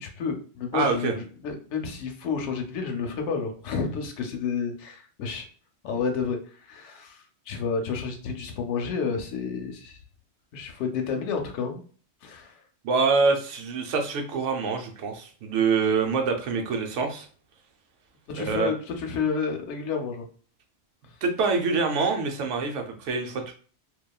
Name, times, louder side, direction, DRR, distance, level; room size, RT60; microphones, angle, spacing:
voice 1, 0.0-5.5 5.8-6.4 6.7-10.0 10.5-11.8 12.2-12.5 18.3-20.2, left 5 dB, 80° left, 4 dB, 0.9 m, -30 dB
voice 2, 0.7-1.1 12.8-17.3 18.3-18.7 21.2-23.5, right 4 dB, 85° right, 4 dB, 0.9 m, -25 dB
2.9 x 2.3 x 2.2 m, 0.42 s
omnidirectional pair, 1.2 m